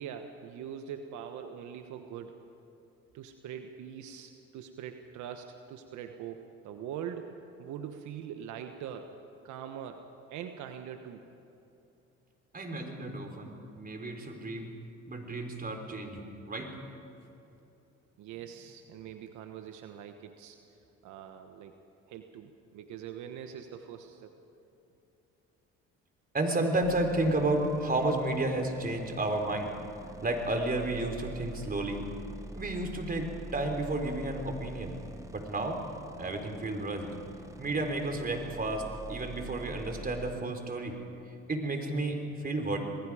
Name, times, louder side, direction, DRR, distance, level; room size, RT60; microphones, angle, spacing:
voice 1, 0.0-2.4 3.1-7.3 7.6-9.1 9.4-11.2 18.2-20.6 21.0-21.7 22.1-24.3, right 8 dB, 75° right, 6 dB, 1.3 m, -43 dB
voice 2, 12.5-14.7 15.1-16.7 26.3-29.7 30.2-32.0 32.6-35.0 35.3-35.8 36.2-37.1 37.6-38.8 39.1-40.9 41.5-42.8, right 2 dB, 30° right, 4 dB, 4.0 m, -32 dB
sound 1, 26.8-40.3, right 1 dB, 10° right, 1.6 m, -46 dB
27.0 x 20.5 x 5.0 m, 2.9 s
supercardioid pair, 75°, 30 cm